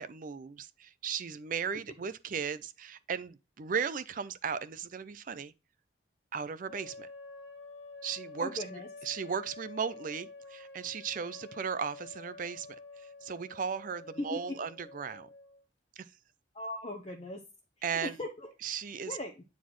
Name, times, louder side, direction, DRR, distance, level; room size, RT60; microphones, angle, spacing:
voice 1, 0.0-5.5 6.3-7.1 8.0-8.5 9.1-12.7 13.0-15.3 16.0-16.1 17.8-18.1 18.6-19.2, right 6 dB, 45° right, 0.4 m, -36 dB
sound 1, 6.6-15.6, left 3 dB, 75° left, 1.9 m, -49 dB
voice 2, 8.4-8.9 14.2-14.4 16.5-17.4 18.0-18.5 19.1-19.4, left 1 dB, 30° left, 0.8 m, -38 dB
9.2 x 4.1 x 3.0 m
head